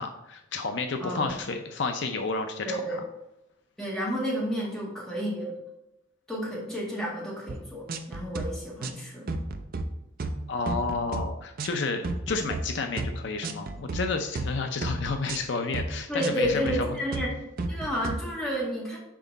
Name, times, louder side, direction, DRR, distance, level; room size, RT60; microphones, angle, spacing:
voice 1, 0.0-2.8 10.5-17.0, left 4 dB, 65° left, 6 dB, 0.5 m, -31 dB
voice 2, 1.0-1.3 2.6-3.0 3.8-5.5 6.3-9.3 16.1-17.3 17.7-19.0, equal, ahead, -5 dB, 1.8 m, -31 dB
sound 1, 7.5-7.6 7.9-8.5 8.8-9.0 9.3-9.8 10.2-10.4 10.7-11.2 11.6-11.8 12.0-12.6 13.0-13.2 13.4-14.0 14.3-14.5 14.8-15.4 15.7-15.9 16.2-16.8 17.1-17.3 17.6-18.2, right 2 dB, 45° right, 0.5 m, -32 dB
6.1 x 4.5 x 3.9 m, 0.88 s
head